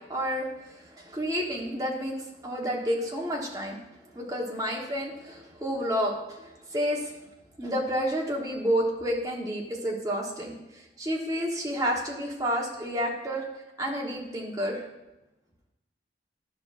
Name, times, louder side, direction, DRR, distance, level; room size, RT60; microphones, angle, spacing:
voice 1, 0.1-3.8 4.1-7.2 7.6-13.5 13.8-14.9, equal, 20° right, -2 dB, 1.1 m, -30 dB
11.0 x 5.7 x 2.5 m, 0.98 s
head